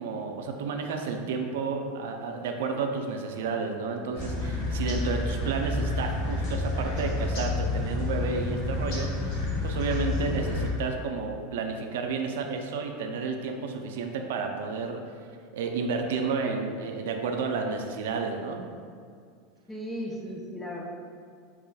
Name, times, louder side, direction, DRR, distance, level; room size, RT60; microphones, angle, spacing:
voice 1, 0.0-15.0 15.5-18.6, right 4 dB, 85° right, 3 dB, 0.4 m, -31 dB
sound 1, 4.1-10.7, left 2 dB, 50° left, 1.2 m, -29 dB
voice 2, 19.7-20.8, equal, 10° left, -1 dB, 0.5 m, -36 dB
4.8 x 3.0 x 2.2 m, 2.2 s
supercardioid pair, 150°, 0 cm